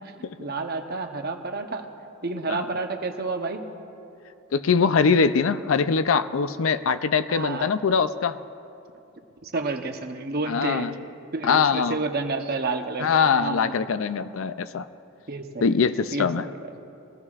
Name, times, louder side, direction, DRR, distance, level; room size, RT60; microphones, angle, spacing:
voice 1, 0.4-1.9 2.2-3.6 7.3-7.7 9.4-10.9 11.3-13.8 15.3-15.8 16.1-16.5, right 3 dB, 50° right, 5 dB, 0.9 m, -30 dB
voice 2, 4.5-8.4 10.5-10.9 11.4-12.0 13.0-14.8 15.6-16.5, left 5 dB, 75° left, 12 dB, 0.5 m, -22 dB
22.0 x 15.5 x 2.4 m, 2.7 s
head